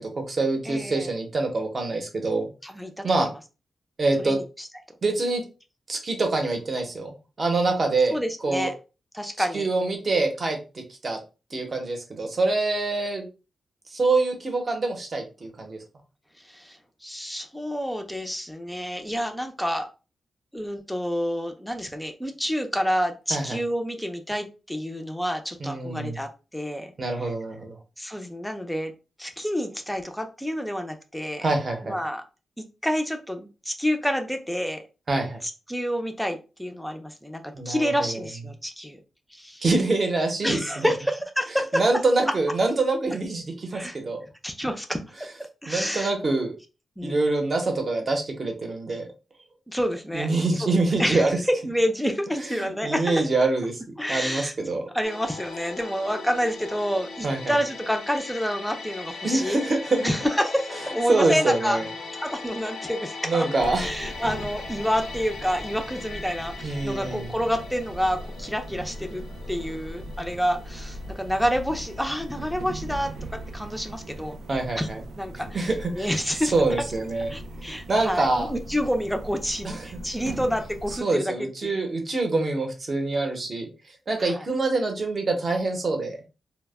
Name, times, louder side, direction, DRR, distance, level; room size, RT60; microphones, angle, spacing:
voice 1, 0.0-2.5 3.0-3.3 4.0-4.4 5.0-5.4 5.9-7.1 7.4-8.2 8.4-8.7 9.5-10.6 11.0-11.2 11.5-13.3 13.9-15.8 23.3-23.6 25.6-26.2 27.0-27.8 31.4-32.0 35.1-35.4 37.5-38.3 39.6-40.9 41.7-44.2 45.7-46.6 47.0-49.1 50.1-51.3 52.6-53.8 54.1-54.9 57.2-57.6 59.2-60.1 61.1-61.9 63.2-63.9 66.6-67.3 74.5-75.0 75.4-76.1 76.5-77.3 77.9-78.5 79.6-79.9 81.0-83.7 84.1-86.2, right 3 dB, 40° right, 3 dB, 0.7 m, -25 dB
voice 2, 0.7-1.1 2.6-3.3 4.2-4.7 8.1-8.7 9.1-9.7 16.5-19.9 20.5-26.9 27.2-27.3 28.0-28.9 29.2-31.5 31.8-32.2 32.8-34.8 35.4-39.0 39.3-39.6 40.4-41.8 43.7-44.0 44.4-45.0 45.6-46.1 47.0-47.2 49.7-50.3 50.6-50.7 51.0-51.3 51.6-53.2 54.0-54.5 54.9-59.6 60.0-61.8 62.2-63.5 63.8-73.1 73.5-74.4 74.8-74.9 75.2-75.7 76.0-76.5 77.3-81.9 84.3-84.4, equal, ahead, 5 dB, 0.4 m, -28 dB
sound 1, 55.0-73.9 74.1-74.3, left 4 dB, 90° left, 0.6 m, -40 dB
sound 2, 63.6-81.0, right 1 dB, 85° right, 0.4 m, -39 dB
2.1 x 2.0 x 3.3 m, 0.31 s
wide cardioid pair, 120°, 0 cm